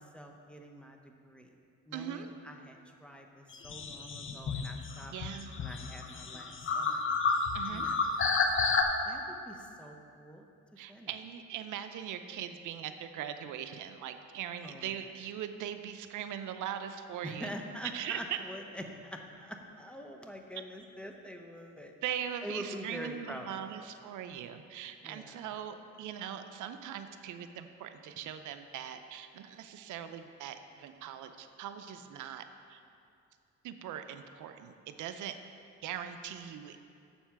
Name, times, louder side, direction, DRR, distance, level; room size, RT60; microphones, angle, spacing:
voice 1, 0.0-1.5 1.9-5.1 5.6-7.0 7.7-8.4 9.0-10.5 10.9-11.1 14.6-14.9 17.2-21.9 22.4-23.8 25.0-25.4, equal, 5° left, 2 dB, 0.8 m, -45 dB
voice 2, 1.9-2.3 5.1-5.5 7.5-7.9 10.8-17.5 17.9-18.2 22.0-32.8 33.6-35.4 35.8-36.8, right 9 dB, 80° right, 9 dB, 0.6 m, -41 dB
sound 1, 3.5-8.8, left 4 dB, 40° left, 0.8 m, -31 dB
7.3 x 7.0 x 5.8 m, 2.5 s
cardioid pair, 90°, 30 cm